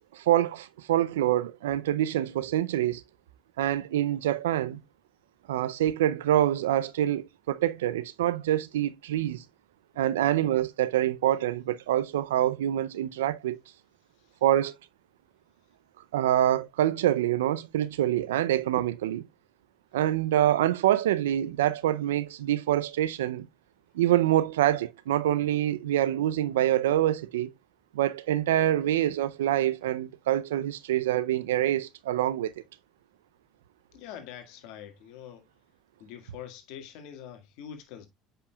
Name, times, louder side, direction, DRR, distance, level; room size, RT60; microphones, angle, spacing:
voice 1, 0.1-3.0 3.6-4.8 5.5-9.4 10.0-13.6 14.4-14.7 16.1-19.3 19.9-23.5 23.9-27.5 27.9-32.5, right 12 dB, 90° right, 0.5 m, -26 dB
voice 2, 33.9-35.5 36.0-38.1, left 9 dB, 70° left, 1.8 m, -44 dB
8.4 x 5.7 x 2.3 m
hypercardioid pair, 80°, 0 cm